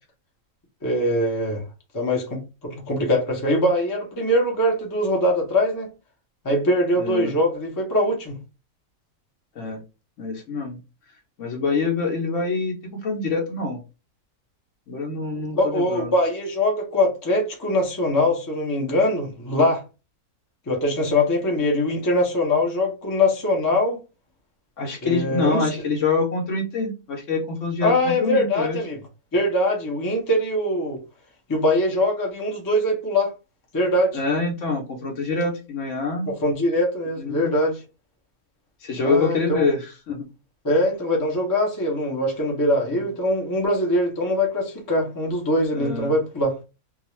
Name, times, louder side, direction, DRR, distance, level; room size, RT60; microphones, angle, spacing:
voice 1, 0.8-1.6 1.9-5.9 6.4-8.4 15.5-19.8 20.7-24.0 25.0-25.7 27.8-29.0 29.3-31.0 31.5-33.3 33.7-34.2 36.3-37.8 39.0-39.6 40.6-46.5, left 1 dB, 25° left, 0.4 m, -22 dB
voice 2, 7.0-7.3 9.6-9.8 10.2-10.8 11.4-13.8 14.9-16.1 24.8-28.8 34.1-36.3 37.2-37.5 38.8-40.3 42.9-43.0 45.7-46.1, left 4 dB, 60° left, 0.9 m, -25 dB
2.4 x 2.3 x 3.0 m
omnidirectional pair, 1.6 m